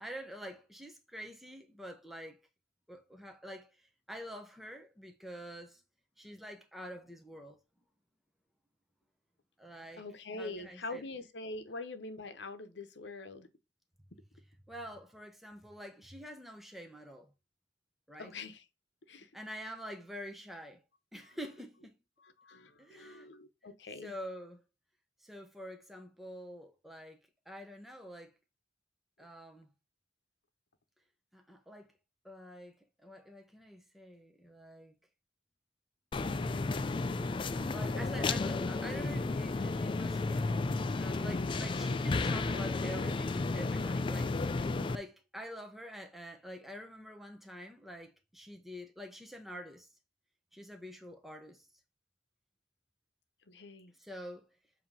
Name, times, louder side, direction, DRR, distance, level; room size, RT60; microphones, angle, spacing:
voice 1, 0.0-2.4 2.9-5.8 6.2-7.6 9.6-10.0 10.3-11.0 14.7-17.3 18.1-18.3 19.3-20.8 21.1-22.0 22.8-23.3 24.0-24.6 25.2-27.2 27.5-28.3 29.2-29.7 31.3-31.9 32.2-34.9 37.7-40.6 41.0-49.9 50.5-51.7 54.0-54.5, equal, ahead, 0.7 m, -47 dB
voice 2, 10.0-13.5 18.2-18.6 19.1-19.3 22.2-24.1 53.5-53.9, left 2 dB, 70° left, 0.9 m, -44 dB
sound 1, 36.1-45.0, left 3 dB, 25° left, 0.3 m, -33 dB
7.3 x 2.9 x 5.5 m
head